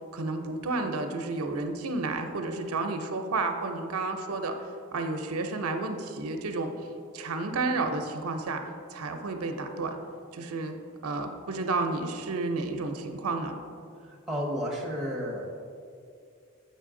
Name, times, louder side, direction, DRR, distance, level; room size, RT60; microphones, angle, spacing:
voice 1, 0.1-4.6 4.9-6.7 7.1-8.6 8.9-10.0 10.3-10.8 11.0-13.6, right 3 dB, 80° right, 5 dB, 0.6 m, -31 dB
voice 2, 14.0-15.5, equal, ahead, -3 dB, 1.0 m, -32 dB
7.5 x 5.5 x 3.7 m, 2.3 s
head